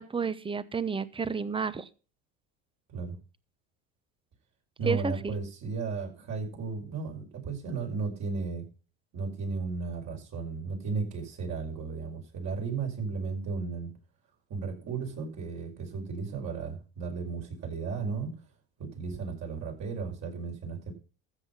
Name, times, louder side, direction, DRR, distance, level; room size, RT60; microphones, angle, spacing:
voice 1, 0.0-1.9 4.8-5.3, right 5 dB, 15° right, 16 dB, 0.9 m, -31 dB
voice 2, 4.8-8.7 9.1-13.9 14.5-18.3 18.8-20.9, right 4 dB, 50° right, 2 dB, 5.6 m, -34 dB
13.5 x 7.9 x 5.6 m, 0.36 s
supercardioid pair, 110°, 36 cm